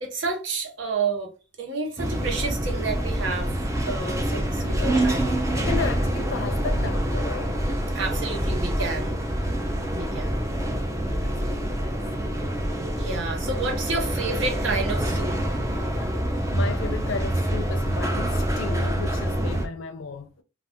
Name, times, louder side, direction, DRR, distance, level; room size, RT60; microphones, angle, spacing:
voice 1, 0.0-1.3 1.6-5.2 7.9-9.2 9.9-10.4 12.9-15.6, right 4 dB, 70° right, 0.9 m, -30 dB
sound 1, 2.0-19.7, right 1 dB, 15° right, 0.5 m, -26 dB
voice 2, 4.6-5.0 5.5-7.6 11.2-12.0 15.4-16.2 16.5-20.4, left 5 dB, 80° left, 0.5 m, -35 dB
2.4 x 2.3 x 3.5 m
head